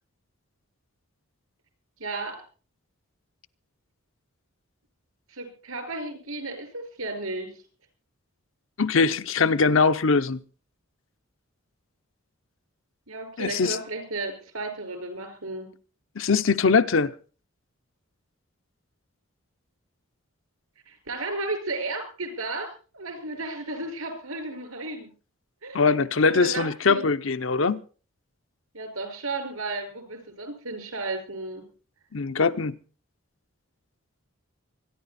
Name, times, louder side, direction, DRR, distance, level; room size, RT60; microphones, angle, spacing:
voice 1, 2.0-2.4 5.3-7.6 13.1-15.7 20.9-25.1 25.6-25.8 26.3-27.1 28.7-31.6, right 2 dB, 80° right, 5.2 m, -34 dB
voice 2, 8.8-10.4 13.4-13.8 16.2-17.1 25.7-27.8 32.1-32.8, left 4 dB, 65° left, 0.7 m, -22 dB
24.5 x 10.5 x 4.2 m
head